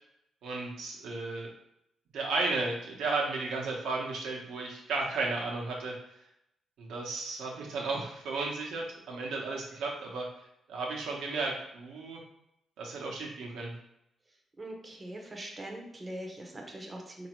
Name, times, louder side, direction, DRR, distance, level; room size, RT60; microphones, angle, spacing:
voice 1, 0.4-1.5 2.1-6.0 6.8-10.3 10.7-12.2 12.8-13.7, right 3 dB, 85° right, -1 dB, 0.9 m, -34 dB
voice 2, 14.6-17.3, right 1 dB, 25° right, 1 dB, 0.7 m, -42 dB
3.9 x 2.7 x 3.0 m, 0.81 s
cardioid pair, 90°, 0 cm